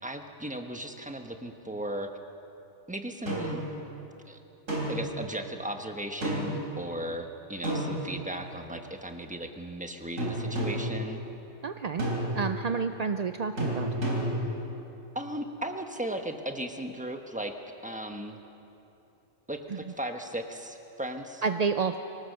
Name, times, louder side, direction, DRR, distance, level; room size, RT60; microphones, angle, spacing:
voice 1, 0.0-2.1 2.9-3.6 4.3-4.4 4.9-11.2 15.1-17.5 17.8-18.4 19.5-21.4, right 1 dB, 5° right, 5 dB, 1.2 m, -36 dB
sound 1, 3.3-3.7 4.7-5.2 6.2-6.6 7.6-8.5 10.2-11.0 12.0-12.6 13.6-14.5, right 1 dB, 80° right, 4.0 m, -30 dB
voice 2, 11.6-12.1 12.3-13.9 21.4-22.0, right 5 dB, 60° right, 8 dB, 0.4 m, -29 dB
24.0 x 18.0 x 6.7 m, 2.9 s
omnidirectional pair, 1.3 m